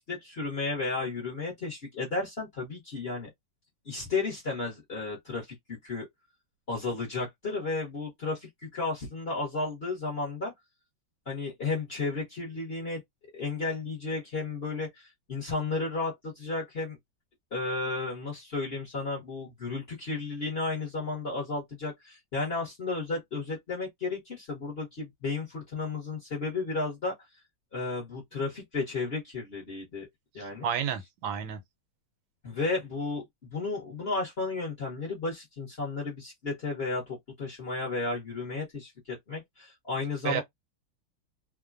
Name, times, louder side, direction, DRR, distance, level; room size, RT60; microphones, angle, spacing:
voice 1, 0.0-3.3 3.8-5.5 5.8-6.1 6.7-10.5 11.3-13.0 13.3-17.0 17.5-27.1 27.7-30.1 30.3-30.7 32.4-33.2 33.5-40.4, left 3 dB, 45° left, 0.9 m, -33 dB
voice 2, 30.4-31.6 40.2-40.4, right 8 dB, 80° right, 1.3 m, -31 dB
3.1 x 2.1 x 2.3 m
omnidirectional pair, 2.1 m